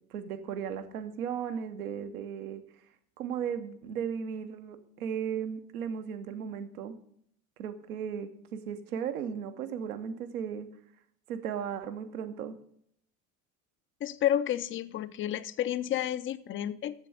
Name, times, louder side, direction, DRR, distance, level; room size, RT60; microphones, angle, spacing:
voice 1, 0.1-2.6 3.2-7.0 7.6-10.7 11.3-12.6, right 8 dB, 70° right, 9 dB, 1.0 m, -36 dB
voice 2, 14.0-16.9, left 11 dB, 30° left, 15 dB, 0.5 m, -30 dB
7.7 x 7.0 x 6.9 m, 0.68 s
figure-of-eight pair, 65°, 45 cm